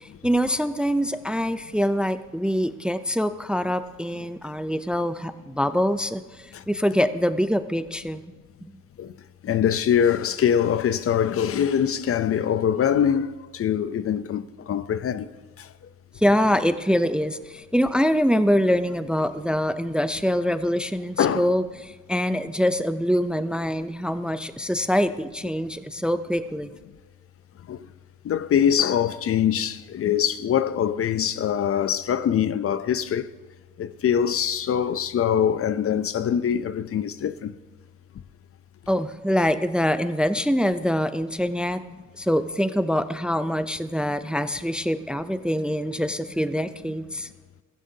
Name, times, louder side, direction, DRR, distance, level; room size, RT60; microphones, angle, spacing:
voice 1, 0.0-8.2 8.6-8.7 16.2-26.7 38.9-41.8 42.2-47.3, equal, 5° right, 0.4 m, -24 dB
voice 2, 9.4-15.3 21.2-21.5 27.7-27.8 28.2-33.3 33.8-37.5, left 9 dB, 50° left, 0.6 m, -23 dB
16.0 x 15.0 x 2.8 m
cardioid pair, 90°, 30 cm